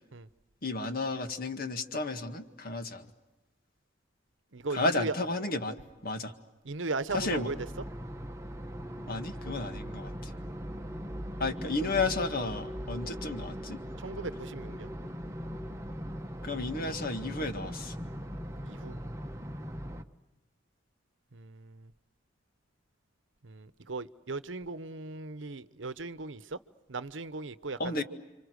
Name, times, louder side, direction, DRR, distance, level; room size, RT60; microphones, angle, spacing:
voice 1, 0.6-3.1 4.7-5.8 6.0-6.3 7.1-7.5 9.1-10.3 11.4-13.8 16.4-18.0 27.8-28.0, left 2 dB, 50° left, 7 dB, 1.9 m, -32 dB
voice 2, 4.5-5.1 6.6-7.5 14.0-14.9 18.6-19.0 21.3-21.9 23.4-26.6 26.9-28.0, right 3 dB, 75° right, 13 dB, 1.0 m, -37 dB
sound 1, 7.1-20.0, equal, 15° right, 1.1 m, -40 dB
30.0 x 26.0 x 6.5 m, 1.1 s
head